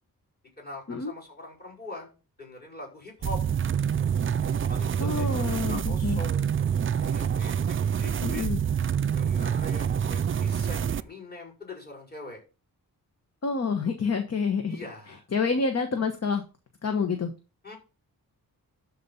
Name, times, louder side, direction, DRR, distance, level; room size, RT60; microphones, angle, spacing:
voice 1, 0.6-2.1 2.4-3.4 4.7-6.5 7.0-8.4 9.1-12.4 14.7-15.2 17.6-17.8, left 2 dB, 25° left, -3 dB, 5.4 m, -42 dB
sound 1, 3.2-11.0, right 8 dB, 35° right, 0.4 m, -27 dB
voice 2, 5.0-6.2 8.2-8.6 13.4-14.8 15.1-16.4 16.8-17.3, left 5 dB, 45° left, 6 dB, 1.2 m, -28 dB
12.5 x 4.2 x 5.7 m, 0.33 s
wide cardioid pair, 120°, 36 cm